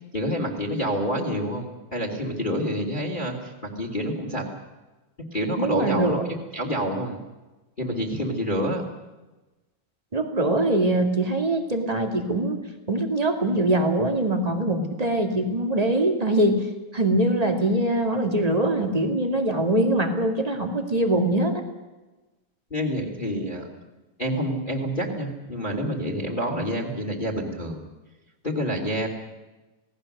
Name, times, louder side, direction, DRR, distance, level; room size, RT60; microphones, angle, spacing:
voice 1, 0.1-4.5 5.3-7.2 7.8-8.8 22.7-23.7 24.2-27.8 28.4-29.1, equal, 15° left, 1 dB, 2.3 m, -28 dB
voice 2, 5.6-6.2 10.1-12.6 12.9-16.6 16.9-21.6, right 1 dB, 15° right, 3 dB, 1.3 m, -23 dB
28.5 x 18.5 x 6.7 m, 1.1 s
omnidirectional pair, 4.1 m